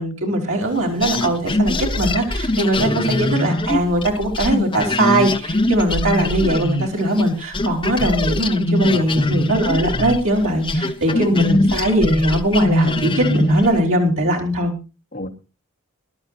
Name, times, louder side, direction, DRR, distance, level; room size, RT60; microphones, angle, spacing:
voice 1, 0.0-14.7, right 1 dB, 70° right, 0 dB, 4.2 m, -20 dB
sound 1, 1.0-7.3 7.5-13.8, left 1 dB, 25° left, 1.2 m, -22 dB
voice 2, 2.7-3.3 8.9-9.3 11.1-11.3 15.1-15.3, equal, 40° left, 3 dB, 2.8 m, -29 dB
22.5 x 12.5 x 2.7 m, 0.31 s
head